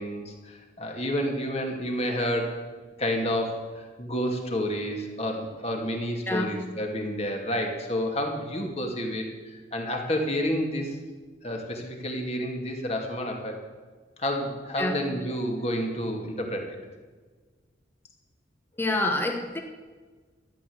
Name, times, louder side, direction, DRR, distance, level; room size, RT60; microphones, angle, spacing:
voice 1, 0.0-2.6 3.0-11.0 11.4-13.6 14.2-16.8, equal, 35° left, 2 dB, 2.4 m, -30 dB
voice 2, 6.3-6.6 14.8-15.0 18.8-19.6, left 1 dB, 10° left, 3 dB, 1.2 m, -27 dB
13.0 x 11.5 x 7.9 m, 1.4 s
head